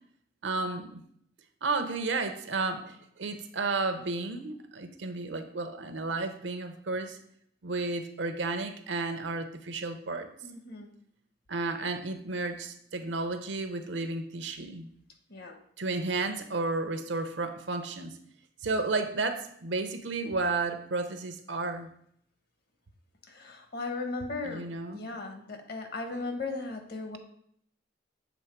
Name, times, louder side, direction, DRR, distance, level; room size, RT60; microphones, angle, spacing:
voice 1, 0.4-1.0 1.6-7.2 7.6-10.3 11.5-14.9 15.8-18.2 18.6-21.9 24.4-25.0, right 3 dB, 75° right, 8 dB, 0.7 m, -32 dB
voice 2, 10.4-11.0 15.3-15.5 23.3-27.2, left 3 dB, 55° left, 6 dB, 1.0 m, -37 dB
7.1 x 3.5 x 4.6 m, 0.66 s
head